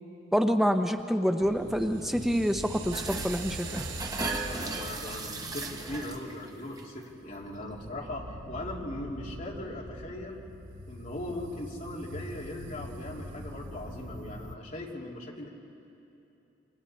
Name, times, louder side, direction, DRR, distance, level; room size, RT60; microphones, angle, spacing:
voice 1, 0.3-3.8, equal, ahead, 6 dB, 0.7 m, -27 dB
sound 1, 1.4-14.6, right 1 dB, 80° right, 1.2 m, -42 dB
sound 2, 2.9-6.5 6.8-7.1 7.4-7.5, right 3 dB, 20° right, 1.3 m, -36 dB
voice 2, 4.4-10.4 10.9-15.5, left 1 dB, 45° left, -2 dB, 2.9 m, -39 dB
28.5 x 24.5 x 4.4 m, 2.9 s
head